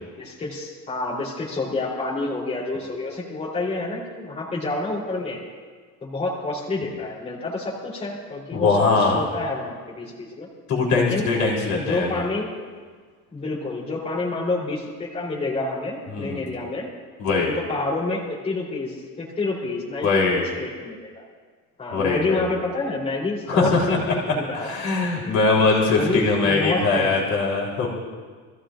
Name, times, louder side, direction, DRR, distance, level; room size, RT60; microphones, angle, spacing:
voice 1, 0.2-5.4 6.0-10.5 10.9-11.3 11.7-12.5 13.3-16.9 17.3-21.2 21.8-25.4 25.9-27.4, left 3 dB, 20° left, -6 dB, 3.4 m, -28 dB
voice 2, 8.5-9.2 10.7-12.2 16.1-16.5 17.2-17.6 20.0-20.4 21.9-22.5 23.5-23.9 24.5-27.9, left 3 dB, 55° left, -3 dB, 3.6 m, -21 dB
26.5 x 15.5 x 2.6 m, 1.5 s
cardioid pair, 170°, 34 cm